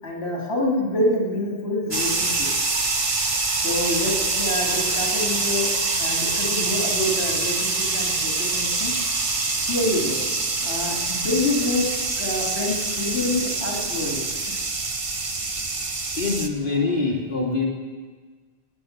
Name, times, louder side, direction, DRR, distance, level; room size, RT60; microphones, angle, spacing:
voice 1, 0.0-2.7 3.6-5.7 6.0-8.9 9.7-10.2 10.6-11.9 12.2-14.6, left 1 dB, 60° left, -2 dB, 3.0 m, -27 dB
sound 1, 1.9-16.5, right 3 dB, 30° right, 0.9 m, -25 dB
voice 2, 16.2-17.7, left 3 dB, 45° left, -5 dB, 2.8 m, -24 dB
22.5 x 9.2 x 6.6 m, 1.5 s
omnidirectional pair, 1.2 m